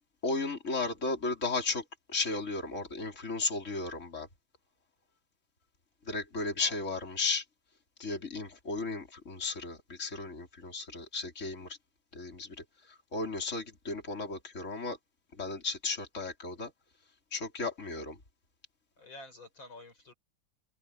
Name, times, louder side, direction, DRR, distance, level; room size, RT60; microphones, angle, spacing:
voice 1, 0.2-1.8 2.1-4.3 6.1-7.4 8.0-11.7 12.1-12.6 13.1-15.0 15.4-16.7 17.3-18.2, left 3 dB, 35° left, 4.4 m, -34 dB
voice 2, 19.0-20.1, left 2 dB, 75° left, 7.7 m, -49 dB
omnidirectional pair, 2.2 m